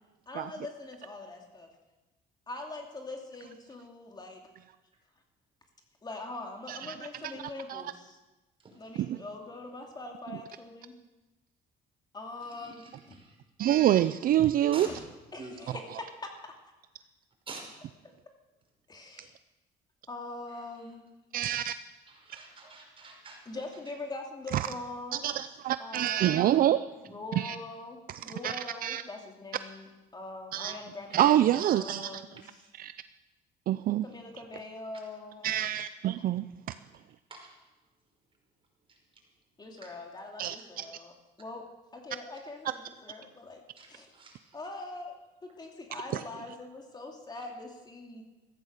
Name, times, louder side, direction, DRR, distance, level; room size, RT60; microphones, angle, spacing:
voice 1, 0.3-1.7 2.5-4.4 6.0-8.2 8.7-10.9 12.1-13.2 14.5-15.0 15.3-16.5 18.9-19.3 20.1-21.0 23.5-25.4 25.8-32.4 34.0-35.6 39.6-43.6 43.9-44.1 44.5-45.1 45.4-48.2, left 2 dB, 25° left, 2 dB, 2.6 m, -43 dB
voice 2, 8.6-9.0 12.5-13.4 14.7-14.9 15.3-15.8 17.5-17.6 20.5-20.6 22.1-23.6 32.4-32.7 37.3-37.5 38.9-39.0 39.8-39.9 43.8-44.6 47.4-47.5, right 3 dB, 30° right, 0 dB, 5.6 m, -48 dB
voice 3, 13.6-14.9 21.3-21.7 25.2-26.8 27.4-27.6 28.4-28.5 28.8-29.0 30.5-30.8 31.1-32.2 32.8-32.9 33.7-34.0 35.4-36.4 40.4-40.8, right 12 dB, 60° right, 13 dB, 0.5 m, -26 dB
15.0 x 14.0 x 6.7 m, 1.1 s
cardioid pair, 110°, 17 cm